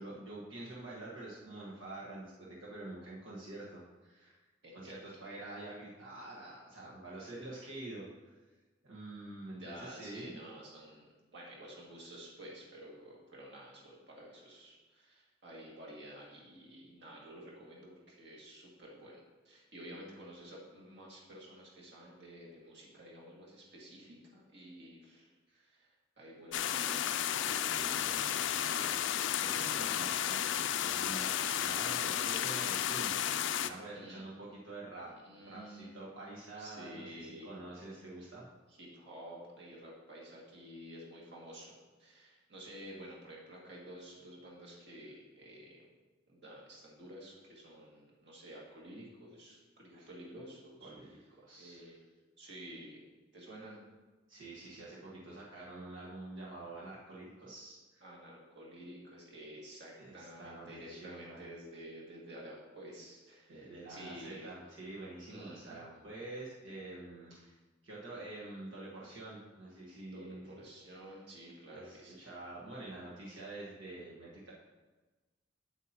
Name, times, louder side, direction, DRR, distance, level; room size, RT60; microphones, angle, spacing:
voice 1, 0.0-4.4 4.7-8.4 8.8-10.4 25.5-25.6 27.4-35.1 35.5-38.5 49.9-50.1 50.8-51.1 51.4-51.9 54.3-58.1 60.0-61.4 63.5-67.6 67.8-70.6 71.7-74.5, right 2 dB, 85° right, -6 dB, 1.4 m, -47 dB
voice 2, 4.6-4.9 9.5-25.3 25.6-25.9 26.2-27.2 33.9-34.3 35.1-35.9 36.6-37.5 38.7-41.7 42.0-45.8 46.3-50.9 51.6-52.0 52.4-53.0 53.3-53.8 58.0-64.5 65.3-65.8 70.0-72.2, equal, 60° right, -4 dB, 2.1 m, -51 dB
sound 1, 26.5-33.7, left 10 dB, 70° left, 0.4 m, -33 dB
8.2 x 8.1 x 2.9 m, 1.2 s
head